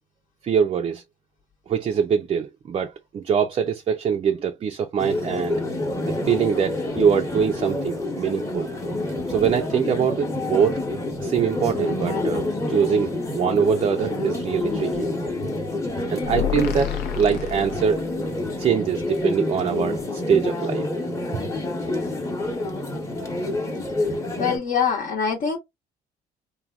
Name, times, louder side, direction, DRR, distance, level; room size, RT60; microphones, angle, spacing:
voice 1, 0.4-1.0 1.7-5.6 6.1-8.7 9.3-10.8 11.2-15.1 16.1-18.0 18.6-21.1, right 7 dB, 35° right, 0.4 m, -23 dB
sound 1, 5.0-24.6, left 2 dB, 15° left, 0.9 m, -28 dB
sound 2, 16.2-18.3, left 11 dB, 85° left, 0.6 m, -29 dB
voice 2, 24.4-25.6, left 6 dB, 55° left, 0.8 m, -23 dB
3.3 x 2.2 x 2.3 m
cardioid pair, 110°, 17 cm